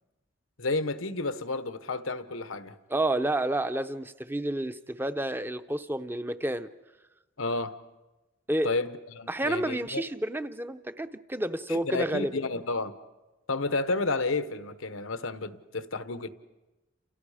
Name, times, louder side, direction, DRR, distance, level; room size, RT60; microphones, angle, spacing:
voice 1, 0.6-2.7 7.4-7.7 8.6-10.0 11.7-12.9 13.5-16.3, left 3 dB, 85° left, 11 dB, 1.2 m, -31 dB
voice 2, 2.9-6.7 8.5-8.8 9.3-12.3, right 1 dB, 10° right, 11 dB, 0.7 m, -30 dB
30.0 x 28.5 x 5.0 m, 1.1 s
head